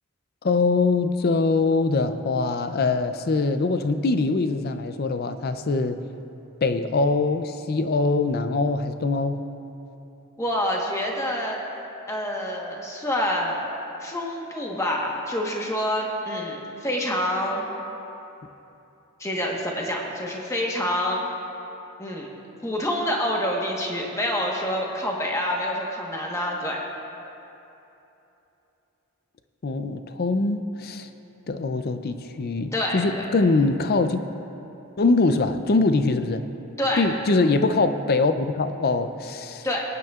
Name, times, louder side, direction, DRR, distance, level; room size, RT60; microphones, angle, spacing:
voice 1, 0.4-6.0 6.6-9.4 29.6-31.1 31.5-34.2 35.0-36.4 37.0-39.7, left 3 dB, 45° left, 9 dB, 0.5 m, -23 dB
voice 2, 10.4-11.6 12.1-13.6 14.0-17.6 19.2-21.2 22.0-22.3 22.6-26.8 32.7-33.2 36.8-37.0 39.6-39.8, left 1 dB, 15° left, -2 dB, 1.2 m, -27 dB
23.5 x 9.1 x 2.4 m, 3.0 s
head